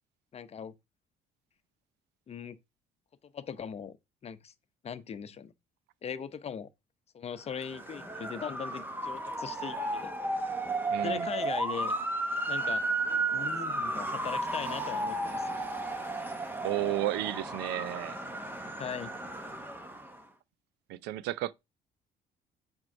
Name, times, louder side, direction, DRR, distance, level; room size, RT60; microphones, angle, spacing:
voice 1, 0.3-0.7 2.3-2.6 3.3-3.9 4.2-4.5 4.8-5.5 6.0-6.7 7.1-10.1 11.0-11.9 12.5-12.8 13.3-15.6 18.8-19.1, left 7 dB, 40° left, 0.8 m, -39 dB
Motor vehicle (road) / Siren, 7.5-20.2, right 2 dB, 10° right, 1.2 m, -34 dB
voice 2, 10.9-11.3 16.6-18.2 20.9-21.5, right 16 dB, 85° right, 0.5 m, -32 dB
6.1 x 4.6 x 5.3 m
cardioid pair, 110°, 17 cm